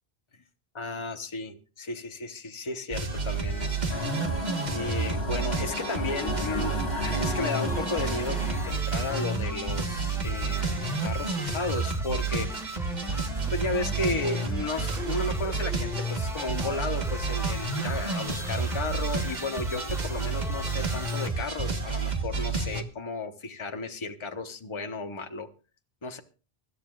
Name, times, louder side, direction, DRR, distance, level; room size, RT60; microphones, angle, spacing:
voice 1, 0.7-3.8 4.7-12.5 13.5-25.5 26.0-26.2, left 3 dB, 30° left, 7 dB, 1.1 m, -34 dB
sound 1, 2.9-22.8, right 3 dB, 45° right, 1.6 m, -30 dB
sound 2, 3.9-8.7, left 1 dB, 80° left, 2.6 m, -34 dB
sound 3, 7.7-21.3, right 1 dB, 5° right, 0.8 m, -40 dB
24.5 x 12.0 x 2.4 m, 0.36 s
omnidirectional pair, 1.1 m